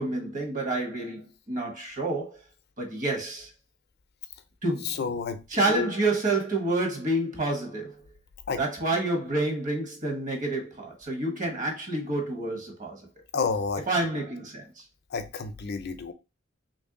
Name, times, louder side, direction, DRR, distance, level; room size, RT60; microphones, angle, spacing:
voice 1, 0.0-2.4 2.8-3.5 4.6-5.0 5.5-8.0 8.6-13.1 13.9-14.8, right 2 dB, 40° right, 1.1 m, -28 dB
voice 2, 4.8-5.9 8.5-8.6 13.3-13.8 15.1-16.1, left 5 dB, 55° left, 0.5 m, -30 dB
3.0 x 2.6 x 3.6 m
head